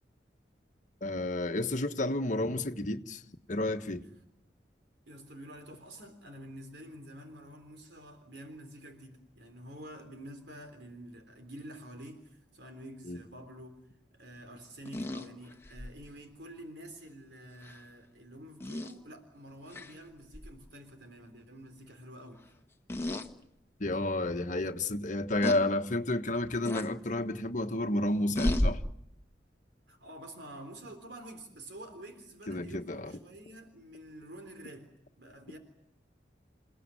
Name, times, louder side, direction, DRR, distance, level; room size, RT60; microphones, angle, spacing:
voice 1, 1.0-3.2 3.5-4.0 13.0-13.2 23.8-28.8 32.5-33.2, left 2 dB, 45° left, 7 dB, 1.4 m, -31 dB
voice 2, 5.1-13.8 14.1-22.4 29.9-34.9 35.2-35.6, right 1 dB, 75° right, 6 dB, 3.7 m, -48 dB
sound 1, 14.9-16.0 17.6-17.8 18.6-18.9 19.7-19.9 20.3-20.5 22.9-23.3 23.9-24.0 25.4-25.6 26.7-26.9 28.4-28.7, left 1 dB, 15° left, 1.5 m, -32 dB
29.0 x 17.5 x 9.8 m, 0.81 s
head